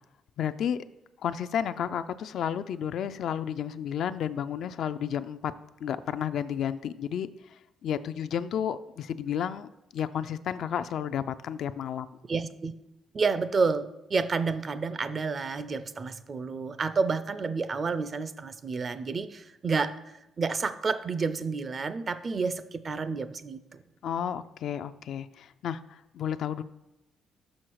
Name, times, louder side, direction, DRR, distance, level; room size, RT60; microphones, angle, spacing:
voice 1, 0.4-0.8 1.2-5.5 5.8-12.1 24.0-26.6, left 9 dB, 70° left, 12 dB, 0.3 m, -32 dB
voice 2, 12.3-12.7 13.1-19.9 20.4-23.8, right 4 dB, 40° right, 13 dB, 0.4 m, -30 dB
6.3 x 5.6 x 4.6 m, 0.92 s
cardioid pair, 90°, 0 cm